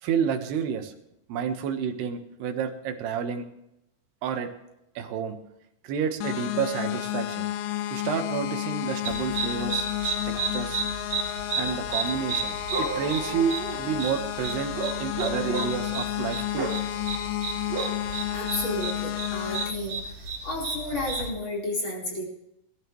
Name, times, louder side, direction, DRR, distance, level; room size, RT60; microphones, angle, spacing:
voice 1, 0.0-0.9 1.3-3.4 4.2-4.5 5.0-5.4 5.8-7.5 7.9-10.8 11.6-14.7 15.0-16.7, right 7 dB, 85° right, 5 dB, 3.4 m, -30 dB
sound 1, 6.2-19.7, left 13 dB, 80° left, 2.1 m, -32 dB
sound 2, 9.0-21.3, right 3 dB, 45° right, 3.7 m, -32 dB
voice 2, 18.3-20.0 20.4-22.2, left 1 dB, 30° left, -2 dB, 4.6 m, -32 dB
21.0 x 12.5 x 3.2 m, 0.83 s
omnidirectional pair, 4.6 m